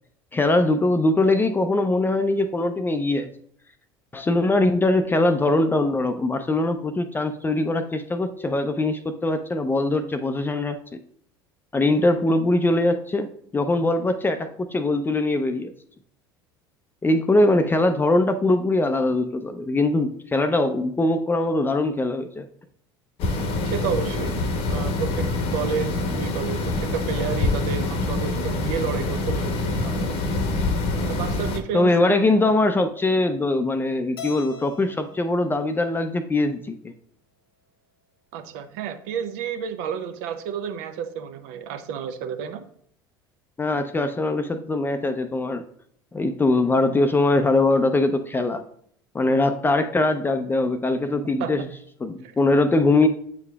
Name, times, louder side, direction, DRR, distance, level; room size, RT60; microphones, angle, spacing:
voice 1, 0.3-3.3 4.1-10.8 11.7-13.3 13.5-15.7 17.0-22.5 31.7-36.7 43.6-45.6 46.1-48.6 49.1-51.7 52.0-53.1, left 2 dB, 15° left, 8 dB, 0.5 m, -22 dB
sound 1, 23.2-31.6, left 2 dB, 50° left, 0.9 m, -25 dB
voice 2, 23.7-24.4 24.7-30.2 31.1-32.2 38.3-42.6 51.4-51.5 52.2-52.4, right 7 dB, 65° right, 9 dB, 0.7 m, -31 dB
Keyboard (musical), 34.2-36.5, left 2 dB, 85° left, 0.6 m, -42 dB
8.4 x 4.8 x 2.3 m, 0.65 s
hypercardioid pair, 75°, 12 cm